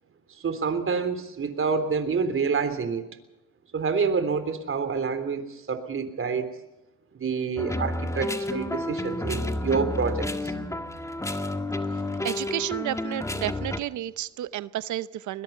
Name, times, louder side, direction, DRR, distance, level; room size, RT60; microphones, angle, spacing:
voice 1, 0.4-3.1 3.7-6.5 7.2-10.5, right 5 dB, 45° right, 10 dB, 3.5 m, -27 dB
sound 1, 7.6-13.8, left 1 dB, 10° left, 1.8 m, -30 dB
voice 2, 11.9-15.4, right 13 dB, 75° right, 16 dB, 0.7 m, -32 dB
21.5 x 21.0 x 5.6 m, 0.95 s
cardioid pair, 90°, 30 cm